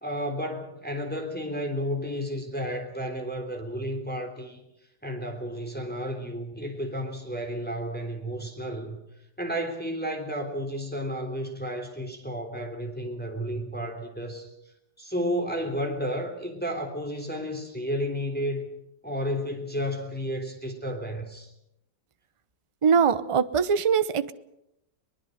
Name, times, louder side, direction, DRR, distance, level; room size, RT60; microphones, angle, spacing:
voice 1, 0.0-4.6 5.0-9.0 9.4-14.5 15.0-18.7 19.0-21.5, equal, 5° left, 3 dB, 3.4 m, -32 dB
voice 2, 22.8-24.3, right 6 dB, 30° right, 13 dB, 0.5 m, -22 dB
23.0 x 20.5 x 6.6 m, 0.82 s
omnidirectional pair, 1.8 m